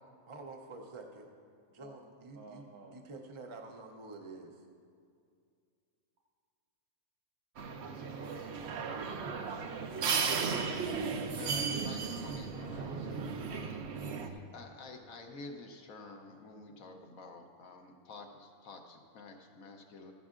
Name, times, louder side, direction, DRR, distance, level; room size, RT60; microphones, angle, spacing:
voice 1, 0.3-1.3 1.7-2.6 2.9-4.7, right 3 dB, 40° right, 2 dB, 0.4 m, -48 dB
voice 2, 2.3-3.0 7.8-9.1, right 4 dB, 80° right, -1 dB, 1.3 m, -49 dB
sound 1, 7.6-14.3, right 5 dB, 60° right, 0.8 m, -35 dB
voice 3, 11.4-13.2 13.5-13.9 14.2-20.1, left 3 dB, 70° left, 3 dB, 1.2 m, -50 dB
14.5 x 11.0 x 2.5 m, 2.3 s
omnidirectional pair, 1.5 m